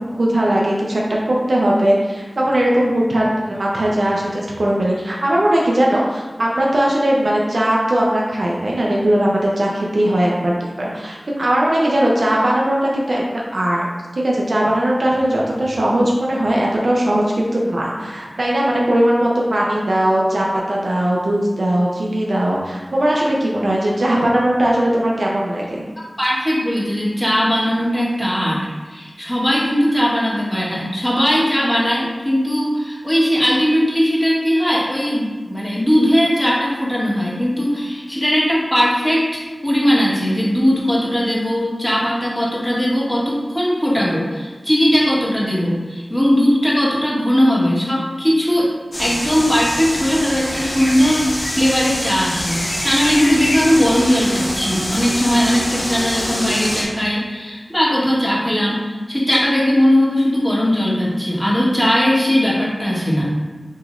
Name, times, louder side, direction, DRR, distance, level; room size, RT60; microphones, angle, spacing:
voice 1, 0.1-1.0 1.3-25.8, right 1 dB, 80° right, -4 dB, 0.7 m, -19 dB
voice 2, 26.0-48.7 49.0-63.3, equal, 10° left, -6 dB, 1.5 m, -18 dB
sound 1, 48.9-56.8, left 1 dB, 65° left, 1.3 m, -25 dB
6.4 x 3.1 x 2.6 m, 1.3 s
wide cardioid pair, 40°, 0 cm